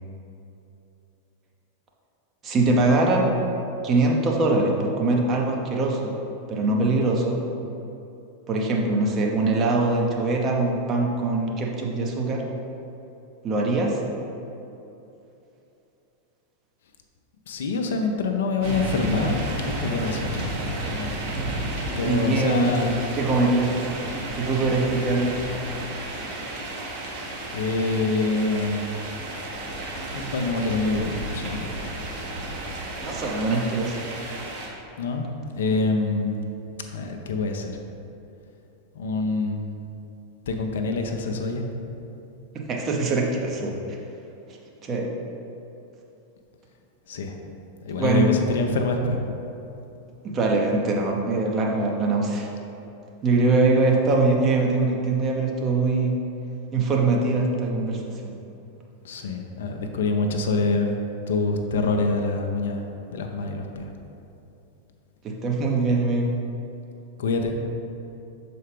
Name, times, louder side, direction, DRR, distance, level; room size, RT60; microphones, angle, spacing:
voice 1, 2.4-3.3 3.8-6.2 6.5-7.4 8.5-12.4 13.4-14.0 22.0-22.8 23.1-23.8 24.4-25.3 33.0-34.0 42.5-44.0 44.9-45.1 48.0-48.3 50.2-52.5 53.2-56.2 56.7-58.3 65.2-66.3, right 3 dB, 30° right, 0 dB, 0.8 m, -22 dB
voice 2, 17.5-21.2 22.0-23.0 27.5-29.0 30.1-31.7 35.0-35.3 35.5-36.6 36.9-37.8 38.9-39.8 40.5-41.7 47.1-47.4 47.9-49.4 59.0-61.0 61.3-63.9 67.2-67.6, left 3 dB, 60° left, 4 dB, 0.5 m, -26 dB
sound 1, 18.6-34.7, right 1 dB, 50° right, 1.2 m, -32 dB
6.4 x 4.2 x 3.4 m, 2.9 s
figure-of-eight pair, 90°, 0 cm